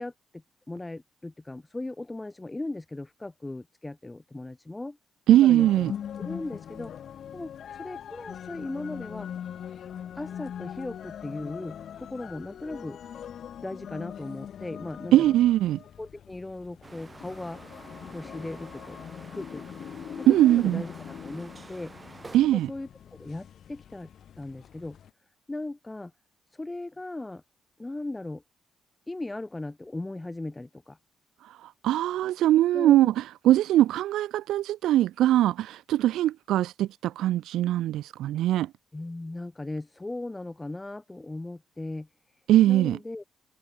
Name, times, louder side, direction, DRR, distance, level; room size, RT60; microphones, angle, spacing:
voice 1, 0.0-5.0 5.3-6.9 7.3-9.3 10.1-13.0 13.6-15.3 16.0-17.6 18.1-19.0 19.3-19.7 20.2-21.9 22.5-22.9 23.2-24.1 24.4-25.0 25.5-26.1 26.5-27.4 27.8-28.4 29.1-31.0 32.7-33.1 38.9-43.2, left 2 dB, 15° left, 1.9 m, -38 dB
voice 2, 5.3-5.9 15.1-15.8 20.3-20.8 22.3-22.7 31.4-38.7 42.5-43.0, right 13 dB, 85° right, 0.4 m, -21 dB
sound 1, 5.6-25.1, left 9 dB, 60° left, 1.6 m, -42 dB
sound 2, 16.8-22.4, right 3 dB, 25° right, 7.3 m, -48 dB
cardioid pair, 90°, 0 cm